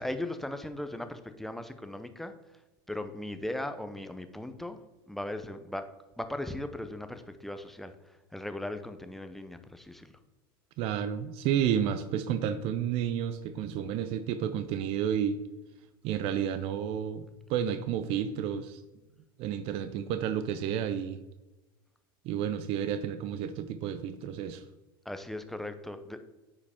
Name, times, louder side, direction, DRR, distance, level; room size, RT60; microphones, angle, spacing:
voice 1, 0.0-2.6 2.9-4.8 5.1-5.9 6.2-10.1 25.0-26.2, left 1 dB, ahead, 9 dB, 0.6 m, -38 dB
voice 2, 10.8-15.4 16.0-18.8 19.4-21.2 22.2-24.6, right 9 dB, 50° right, 11 dB, 0.5 m, -31 dB
8.6 x 4.9 x 3.6 m, 1.1 s
hypercardioid pair, 100°, 12 cm